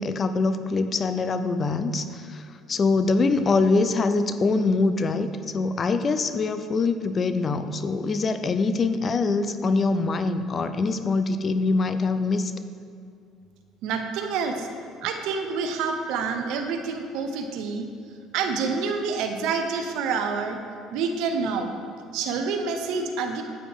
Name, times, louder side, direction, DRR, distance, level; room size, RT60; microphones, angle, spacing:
voice 1, 0.0-12.5, left 3 dB, 35° left, 10 dB, 0.5 m, -24 dB
voice 2, 13.8-14.7 15.0-17.9 18.3-20.6 20.9-21.7 22.1-23.4, right 5 dB, 75° right, 6 dB, 0.9 m, -27 dB
9.4 x 8.6 x 3.7 m, 2.4 s
supercardioid pair, 90°, 0 cm